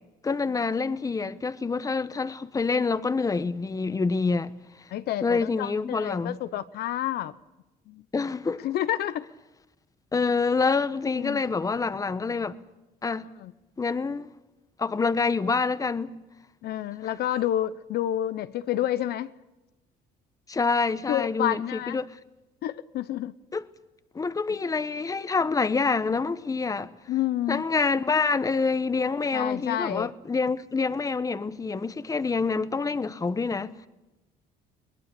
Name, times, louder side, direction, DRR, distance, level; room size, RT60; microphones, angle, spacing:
voice 1, 0.2-4.5 5.2-6.4 8.1-8.7 10.1-12.6 13.0-13.3 13.8-14.3 14.8-16.2 20.5-22.2 23.5-23.6 24.1-26.9 27.5-33.9, left 4 dB, 20° left, 1.0 m, -27 dB
voice 2, 4.9-7.3 7.9-8.0 8.6-9.3 11.1-11.4 13.4-13.5 16.6-19.3 21.1-22.0 22.6-23.3 27.1-27.6 29.3-30.1, left 12 dB, 70° left, 0.9 m, -29 dB
21.5 x 20.5 x 8.4 m
cardioid pair, 110°, 17 cm